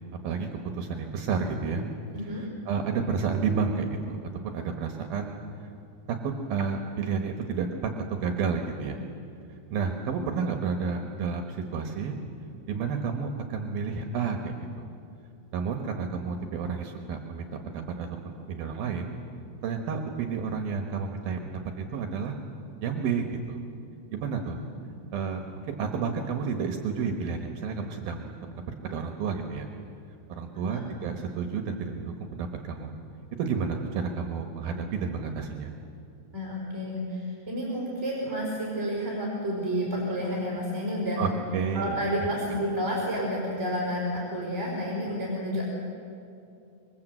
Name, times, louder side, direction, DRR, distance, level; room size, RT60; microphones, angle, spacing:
voice 1, 0.7-1.8 2.7-4.2 4.4-5.7 6.1-9.0 9.7-12.1 12.7-14.8 15.5-19.1 19.6-22.3 22.8-23.6 24.1-24.6 25.1-29.7 30.3-32.9 33.4-35.7 41.2-42.0, right 5 dB, 70° right, 4 dB, 3.0 m, -31 dB
voice 2, 2.1-2.4 30.5-30.8 36.3-41.2 41.7-45.6, equal, 15° right, -4 dB, 4.6 m, -30 dB
26.0 x 22.5 x 7.9 m, 2.5 s
omnidirectional pair, 4.8 m